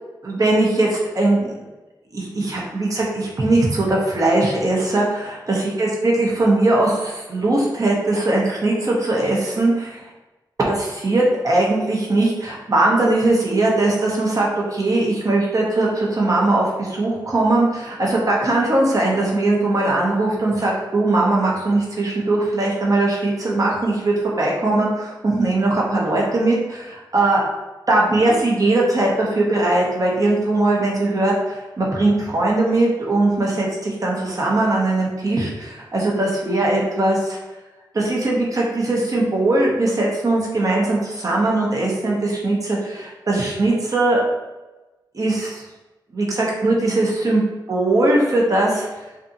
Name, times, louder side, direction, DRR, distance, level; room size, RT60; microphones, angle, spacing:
voice 1, 0.2-1.5 2.1-10.0 10.6-27.4 27.9-37.4 37.9-44.2 45.1-45.6 46.1-47.4 47.7-48.9, right 2 dB, 45° right, -3 dB, 0.7 m, -20 dB
2.6 x 2.4 x 2.6 m, 1.1 s
wide cardioid pair, 75°, 8 cm